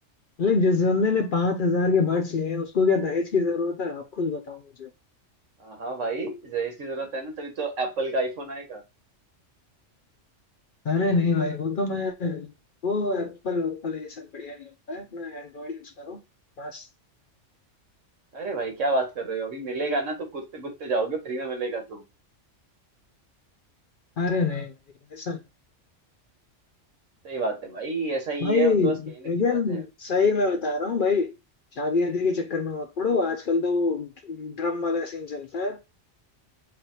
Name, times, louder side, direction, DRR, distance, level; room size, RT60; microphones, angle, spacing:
voice 1, 0.4-4.9 10.9-12.5 12.8-16.2 16.6-16.8 24.2-24.7 25.1-25.4 28.4-31.3 31.8-35.8, left 4 dB, 55° left, 0.6 m, -25 dB
voice 2, 5.6-8.8 18.3-22.0 27.2-29.8, right 3 dB, 85° right, 1.6 m, -30 dB
4.0 x 3.4 x 2.7 m
omnidirectional pair, 1.3 m